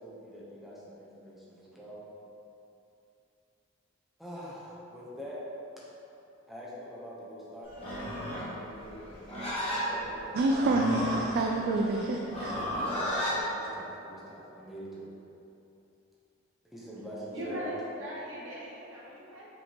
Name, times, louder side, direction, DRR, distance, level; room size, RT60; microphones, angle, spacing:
voice 1, 0.0-2.1 4.2-5.5 5.8-5.9 6.5-8.1 8.4-9.2 9.7-10.7 11.5-11.8 12.7-13.0 13.3-15.1 16.6-17.7, equal, ahead, -8 dB, 0.7 m, -44 dB
Livestock farm animals working animals, 7.7-13.4, equal, 30° left, 1.0 m, -34 dB
voice 2, 10.3-12.5, right 2 dB, 55° right, 0 dB, 0.3 m, -27 dB
voice 3, 17.3-19.5, equal, 70° right, -7 dB, 1.2 m, -39 dB
5.2 x 3.4 x 2.9 m, 2.8 s
head